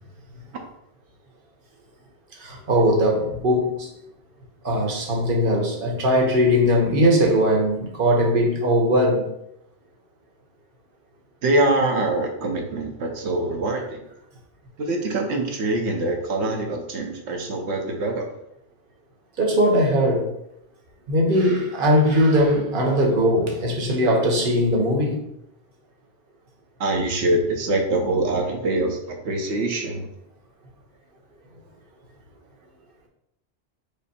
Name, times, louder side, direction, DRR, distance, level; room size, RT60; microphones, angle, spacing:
voice 1, 2.4-3.9 4.6-9.3 19.4-20.3 21.1-25.2, equal, 50° right, 0 dB, 1.1 m, -20 dB
voice 2, 11.4-14.0 14.8-18.3 26.8-30.1, right 2 dB, 75° right, 2 dB, 1.0 m, -24 dB
5.1 x 2.0 x 4.1 m, 0.79 s
omnidirectional pair, 1.2 m